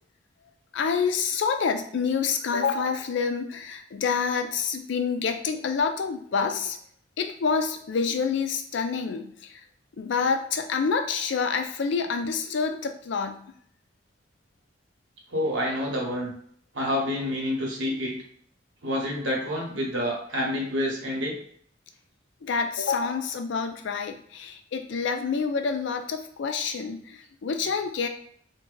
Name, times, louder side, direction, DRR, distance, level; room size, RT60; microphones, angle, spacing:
voice 1, 0.7-6.8 7.2-9.6 9.9-13.4 22.4-28.1, left 5 dB, 70° left, 6 dB, 0.4 m, -27 dB
voice 2, 15.3-16.3 16.7-18.2 18.8-21.3, left 1 dB, 75° right, -2 dB, 1.0 m, -28 dB
2.7 x 2.2 x 3.8 m, 0.62 s
head